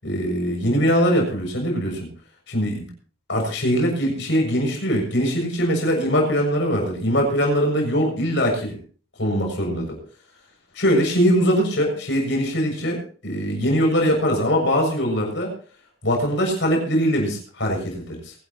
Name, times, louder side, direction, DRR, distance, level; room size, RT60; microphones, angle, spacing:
voice 1, 0.0-2.1 2.5-2.9 3.3-8.8 9.2-10.0 10.8-15.5 16.0-18.3, equal, 55° left, 1 dB, 7.0 m, -22 dB
23.0 x 12.5 x 3.0 m, 0.41 s
head